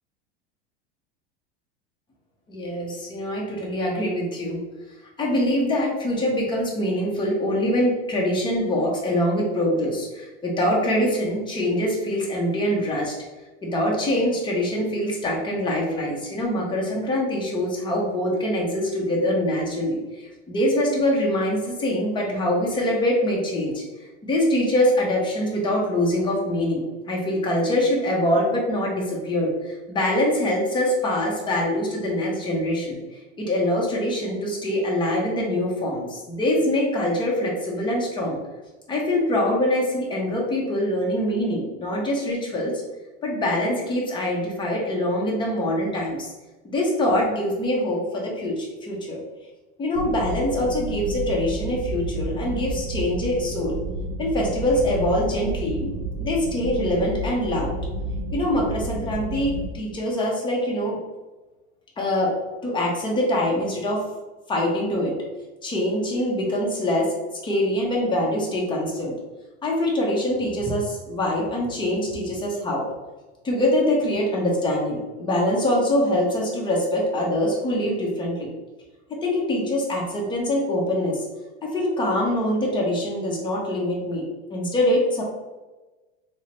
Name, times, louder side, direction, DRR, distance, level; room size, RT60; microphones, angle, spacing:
voice 1, 2.5-4.6 5.2-13.2 13.6-23.8 24.2-33.0 33.4-38.4 38.9-42.8 43.2-46.3 46.6-49.2 49.8-53.8 54.2-55.9 56.2-57.8 58.3-61.0 62.0-62.3 62.6-64.0 64.5-65.1 65.6-67.1 67.4-69.1 69.6-72.9 73.4-78.5 79.1-81.3 81.6-84.3 84.5-85.2, left 1 dB, 15° left, -2 dB, 0.8 m, -24 dB
sound 1, 50.0-59.7, right 1 dB, 55° right, 0.4 m, -31 dB
3.7 x 2.1 x 2.8 m, 1.2 s
supercardioid pair, 135°, 29 cm